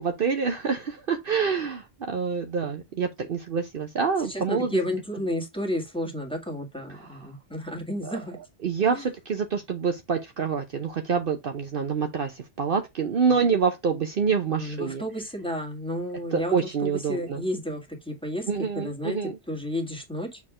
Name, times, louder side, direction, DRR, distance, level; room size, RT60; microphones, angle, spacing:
voice 1, 0.0-4.8 7.0-7.1 8.0-8.1 8.6-15.0 16.3-17.4 18.5-19.4, right 6 dB, 55° right, 0.9 m, -26 dB
voice 2, 4.2-8.4 8.9-9.1 14.5-18.5 18.8-20.4, left 1 dB, 5° left, 1.8 m, -32 dB
6.6 x 3.6 x 4.8 m
omnidirectional pair, 1.2 m